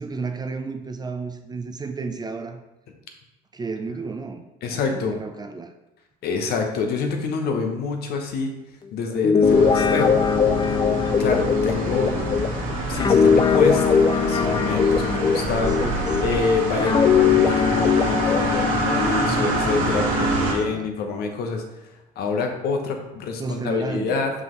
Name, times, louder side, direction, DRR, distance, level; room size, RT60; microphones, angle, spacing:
voice 1, 0.0-2.6 3.5-5.7 15.8-16.5 20.4-20.9 23.4-24.4, right 4 dB, 20° right, 6 dB, 0.6 m, -33 dB
voice 2, 4.6-5.2 6.2-8.6 8.9-10.9 11.2-12.2 12.9-15.8 16.2-21.9 22.2-24.4, left 4 dB, 60° left, 4 dB, 1.0 m, -26 dB
Guitar, 9.1-16.3 16.8-20.5, left 6 dB, 25° left, 0.4 m, -21 dB
sound 1, 9.4-20.5, right 2 dB, 75° right, 1.9 m, -26 dB
5.5 x 5.4 x 3.1 m, 0.97 s
supercardioid pair, 80°, 18 cm